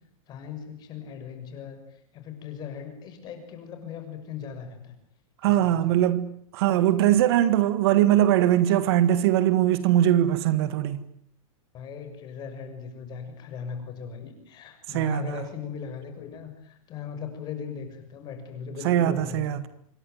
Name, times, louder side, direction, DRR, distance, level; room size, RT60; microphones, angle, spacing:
voice 1, 0.3-4.9 5.4-6.1 11.7-19.6, left 7 dB, 25° left, 6.5 m, -39 dB
voice 2, 5.4-11.0 14.9-15.4 18.8-19.7, right 12 dB, 45° right, 1.7 m, -21 dB
27.0 x 23.0 x 9.3 m
supercardioid pair, 165°, 18 cm